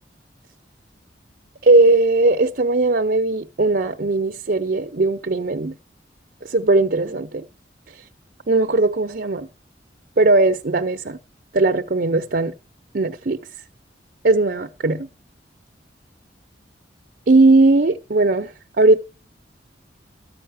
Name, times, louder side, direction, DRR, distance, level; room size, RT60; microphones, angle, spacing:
voice 1, 1.6-5.8 6.4-7.5 8.5-9.5 10.2-11.2 11.5-12.5 12.9-13.4 14.2-15.1 17.3-19.0, right 2 dB, 55° right, 0.7 m, -18 dB
13.5 x 5.6 x 9.3 m
head